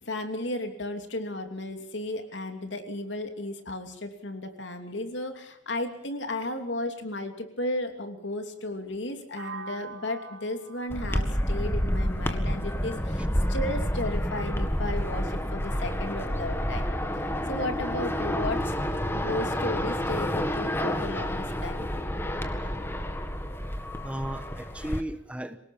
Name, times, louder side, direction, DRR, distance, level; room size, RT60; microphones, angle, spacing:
voice 1, 0.0-13.2 13.5-16.9 17.5-18.7 19.1-21.9, left 1 dB, 65° left, 6 dB, 2.9 m, -34 dB
sound 1, 9.4-13.2, right 4 dB, 70° right, 4.3 m, -45 dB
sound 2, 10.9-25.0, equal, 10° left, 1.8 m, -29 dB
voice 2, 24.0-25.6, right 1 dB, 5° right, 10 dB, 1.1 m, -35 dB
27.0 x 18.5 x 7.2 m, 0.76 s
head